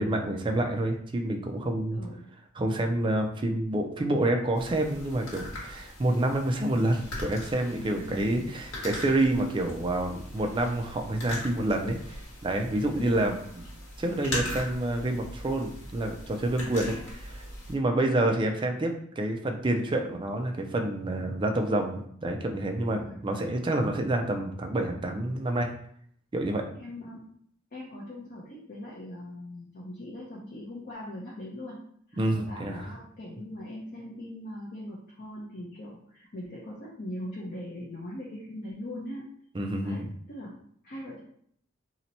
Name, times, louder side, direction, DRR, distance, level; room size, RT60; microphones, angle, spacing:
voice 1, 0.0-2.0 2.6-12.0 12.4-13.3 14.0-17.0 17.7-25.7 26.3-26.6 32.2-32.9 39.5-40.1, right 1 dB, 25° right, 3 dB, 0.4 m, -28 dB
voice 2, 1.9-2.3 7.8-8.5 12.7-13.5 16.6-17.2 17.9-18.0 22.9-23.3 26.7-27.3 27.7-31.8 32.1-39.3 39.8-41.2, left 1 dB, 45° left, -5 dB, 0.6 m, -41 dB
sound 1, 4.6-17.7, left 1 dB, 65° left, 1.3 m, -40 dB
2.8 x 2.1 x 4.0 m, 0.65 s
head